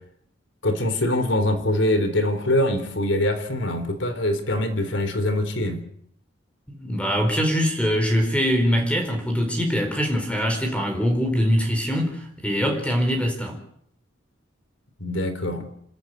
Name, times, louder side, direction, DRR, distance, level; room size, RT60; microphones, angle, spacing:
voice 1, 0.6-5.8 15.0-15.7, left 1 dB, 65° left, 3.9 m, -23 dB
voice 2, 6.7-13.6, equal, 5° left, 4.3 m, -23 dB
28.0 x 13.5 x 9.4 m
head